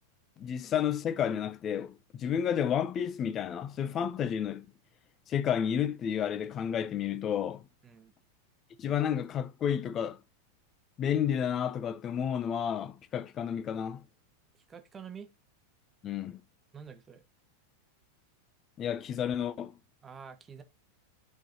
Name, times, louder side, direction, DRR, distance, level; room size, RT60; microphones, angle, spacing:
voice 1, 0.4-4.7 5.3-7.6 8.8-10.2 11.0-14.0 16.0-16.4 18.8-19.7, left 8 dB, 30° left, 0.4 m, -31 dB
voice 2, 7.8-8.1 14.5-15.3 16.7-17.2 20.0-20.6, right 7 dB, 20° right, 0.9 m, -47 dB
10.5 x 3.8 x 2.6 m
figure-of-eight pair, 90°, 0 cm